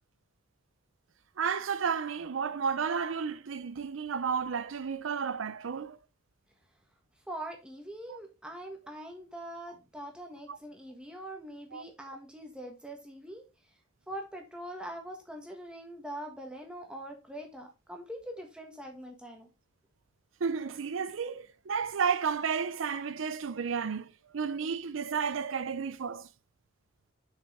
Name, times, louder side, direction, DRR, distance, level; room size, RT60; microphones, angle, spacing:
voice 1, 1.4-6.0 8.1-8.2 10.5-10.6 11.7-11.8 20.4-26.3, right 6 dB, 80° right, 0.5 m, -32 dB
voice 2, 7.3-13.4 14.1-19.5, right 1 dB, 5° right, 1.5 m, -43 dB
6.7 x 5.4 x 3.7 m
head